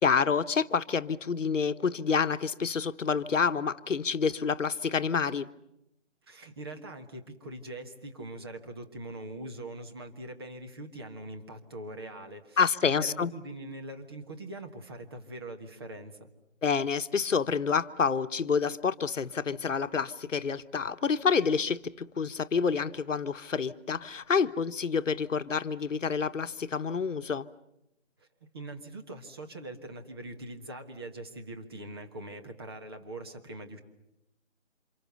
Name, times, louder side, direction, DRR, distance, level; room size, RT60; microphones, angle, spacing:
voice 1, 0.0-5.5 12.6-13.3 16.6-27.5, left 5 dB, 75° left, 1.1 m, -28 dB
voice 2, 6.3-16.3 28.5-33.8, right 1 dB, 20° right, 1.4 m, -42 dB
29.0 x 27.0 x 6.9 m
hypercardioid pair, 170°, 38 cm